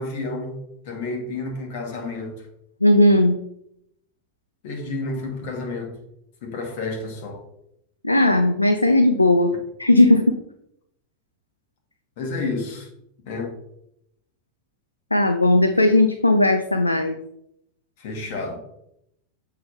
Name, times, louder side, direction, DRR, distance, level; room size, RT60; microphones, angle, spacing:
voice 1, 0.0-2.5 4.6-6.0 6.4-7.4 12.2-12.9 13.3-13.5 18.0-18.6, left 3 dB, 55° left, 1.9 m, -30 dB
voice 2, 2.8-3.4 8.0-9.5 9.8-10.4 15.1-17.2, left 1 dB, 90° left, 0.4 m, -17 dB
6.9 x 3.7 x 5.5 m
figure-of-eight pair, 85°, 0 cm